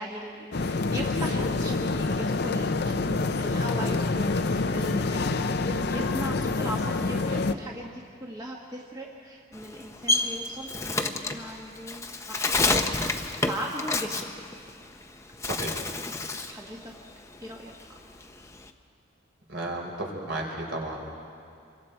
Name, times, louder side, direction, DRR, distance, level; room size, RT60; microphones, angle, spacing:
voice 1, 0.0-13.1 13.4-14.4 16.4-16.9 17.4-18.0, equal, 20° right, -1 dB, 1.2 m, -38 dB
sound 1, 0.5-7.5, left 3 dB, 50° left, 0.6 m, -27 dB
Bird, 9.5-15.0 15.3-16.6 17.0-18.7, left 2 dB, 15° left, 0.7 m, -29 dB
voice 2, 15.4-15.8 19.5-21.0, right 1 dB, 65° right, 0 dB, 3.8 m, -33 dB
26.0 x 22.5 x 4.5 m, 2.4 s
head